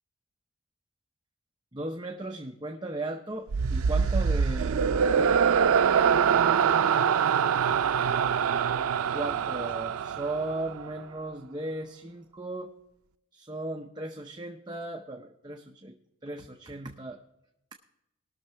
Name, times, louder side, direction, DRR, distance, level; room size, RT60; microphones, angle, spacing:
voice 1, 1.7-4.8 5.1-5.5 9.1-12.7 13.3-16.0 16.2-17.2, right 2 dB, 20° right, 2 dB, 0.7 m, -36 dB
sound 1, 3.5-10.9, right 7 dB, 85° right, 0.4 m, -24 dB
20.0 x 6.6 x 4.6 m, 0.85 s
head